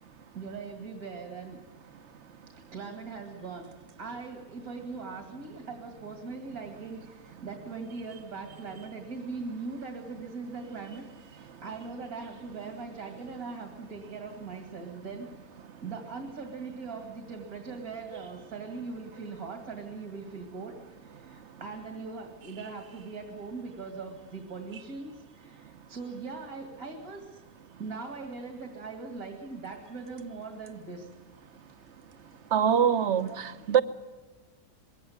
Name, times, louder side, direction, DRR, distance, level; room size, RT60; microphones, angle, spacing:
voice 1, 0.3-1.6 2.5-15.3 15.8-27.4 27.8-31.1 33.3-33.4, right 4 dB, 75° right, 4 dB, 2.8 m, -40 dB
voice 2, 32.5-33.8, right 8 dB, 55° right, 11 dB, 1.3 m, -24 dB
22.0 x 17.0 x 9.3 m, 1.3 s
omnidirectional pair, 1.5 m